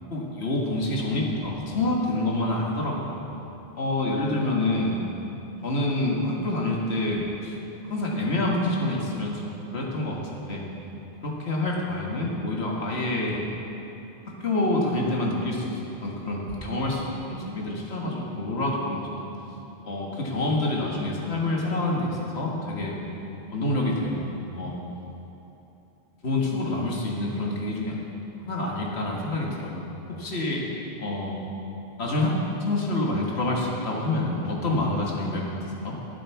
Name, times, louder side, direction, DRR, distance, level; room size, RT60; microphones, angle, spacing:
voice 1, 0.1-3.2 3.8-5.0 5.6-7.6 7.8-10.6 11.2-13.5 14.4-19.3 19.8-23.1 23.5-24.3 24.5-24.8 26.2-28.0 28.4-29.8 30.2-30.7 31.0-31.4 32.0-35.5 35.8-36.0, left 2 dB, 90° left, -2 dB, 2.0 m, -27 dB
17.0 x 7.9 x 4.8 m, 3.0 s
omnidirectional pair, 1.1 m